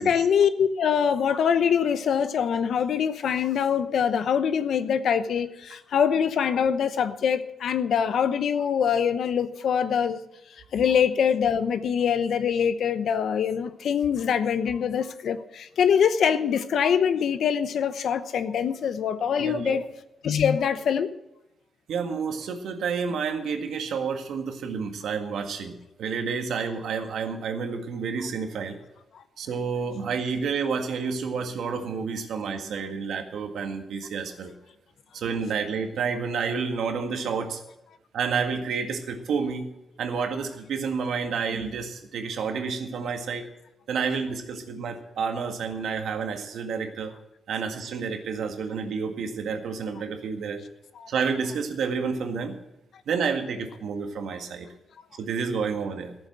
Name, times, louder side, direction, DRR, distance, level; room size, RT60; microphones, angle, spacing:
voice 1, 0.0-10.2 10.7-19.8 20.2-21.1 51.0-51.1, left 7 dB, 75° left, 0.9 m, -24 dB
voice 2, 19.4-19.8 21.9-28.8 29.4-34.5 35.1-37.6 38.1-39.7 40.0-43.5 43.9-47.1 47.5-50.6 51.1-52.6 53.1-54.7 55.2-56.2, right 5 dB, 85° right, 1.8 m, -30 dB
14.0 x 7.3 x 7.5 m
cardioid pair, 100°, 0 cm